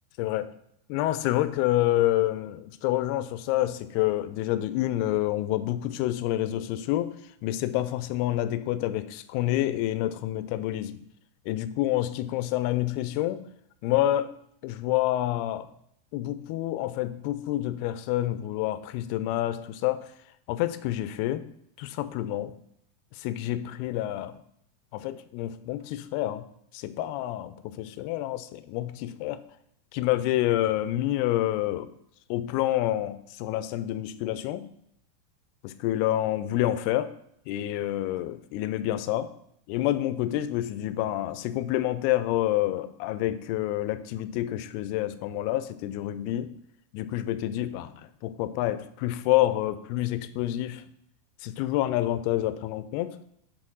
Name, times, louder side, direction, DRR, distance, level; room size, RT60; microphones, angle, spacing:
voice 1, 0.2-0.5 0.9-7.2 7.4-11.0 11.5-13.4 13.8-14.3 14.6-15.7 16.1-20.1 20.5-21.4 21.8-22.5 23.1-24.4 24.9-26.5 26.7-29.4 29.9-31.9 32.3-34.7 35.6-37.1 37.5-39.3 39.7-46.5 46.9-47.9 48.2-50.8 51.4-53.2, left 14 dB, 85° left, 12 dB, 2.4 m, -28 dB
7.7 x 3.8 x 6.1 m, 0.72 s
omnidirectional pair, 4.8 m